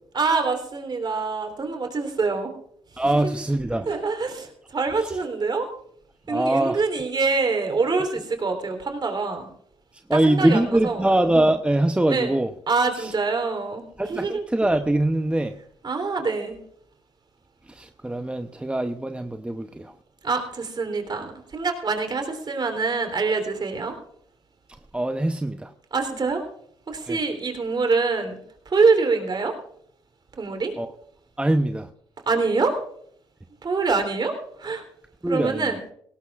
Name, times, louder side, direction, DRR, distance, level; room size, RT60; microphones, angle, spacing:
voice 1, 0.1-2.5 2.9-3.4 3.8-5.7 6.3-9.5 10.1-11.1 12.1-12.3 12.7-14.4 15.8-16.6 20.2-24.0 25.9-26.4 26.9-28.4 28.6-29.5 30.4-30.7 32.2-32.8 33.6-34.8 35.3-35.8, right 4 dB, 45° right, 3.3 m, -25 dB
voice 2, 3.0-3.9 6.3-6.8 10.1-12.5 14.0-15.6 17.7-19.9 24.9-25.7 27.1-27.2 30.8-30.9 31.4-31.9 35.2-35.7, right 1 dB, 10° right, 0.8 m, -23 dB
18.5 x 17.5 x 2.4 m
supercardioid pair, 60°, 11 cm